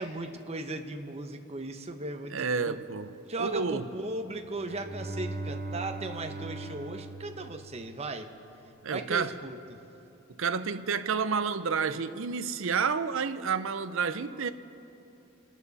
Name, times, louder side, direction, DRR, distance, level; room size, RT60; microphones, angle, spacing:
voice 1, 0.0-2.8 3.2-8.3 8.9-9.8, right 2 dB, 30° right, 1.0 m, -37 dB
voice 2, 2.3-3.1 3.4-3.8 8.8-9.4 10.3-14.5, right 5 dB, 65° right, 0.6 m, -30 dB
Bowed string instrument, 4.4-8.5, right 2 dB, 50° right, 1.5 m, -40 dB
29.0 x 12.0 x 4.1 m
head